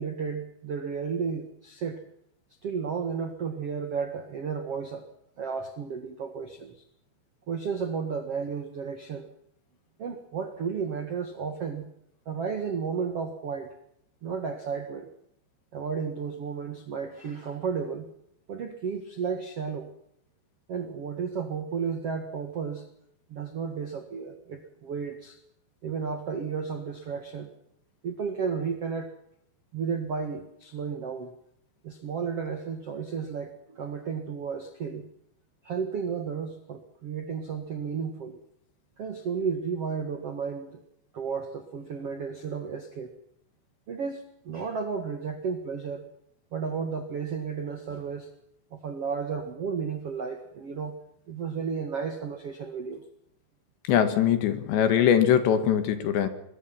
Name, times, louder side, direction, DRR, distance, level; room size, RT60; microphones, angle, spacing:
voice 1, 0.0-2.0 2.6-5.0 5.4-6.7 7.5-9.3 10.0-11.9 12.2-13.7 14.2-15.1 15.7-18.1 18.5-19.9 20.7-22.9 23.3-25.4 25.8-27.5 28.0-29.1 29.7-31.3 31.8-35.1 35.6-38.4 39.0-40.8 41.1-43.1 43.9-46.1 46.5-48.3 48.7-51.0 51.3-53.0, right 6 dB, 60° right, 7 dB, 1.5 m, -33 dB
voice 2, 53.9-56.3, left 9 dB, 65° left, 9 dB, 3.8 m, -22 dB
24.0 x 22.5 x 6.0 m, 0.74 s
omnidirectional pair, 5.7 m